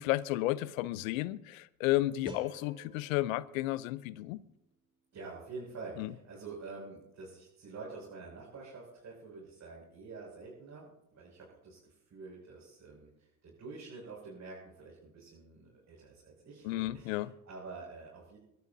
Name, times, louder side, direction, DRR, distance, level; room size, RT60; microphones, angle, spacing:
voice 1, 0.0-4.4 6.0-6.1 16.6-17.3, left 16 dB, 90° left, 0.7 m, -32 dB
sound 1, 2.2-5.3, right 1 dB, 10° right, 1.9 m, -52 dB
voice 2, 5.1-18.4, right 4 dB, 45° right, 6.5 m, -47 dB
24.5 x 12.5 x 2.8 m
supercardioid pair, 80°, 39 cm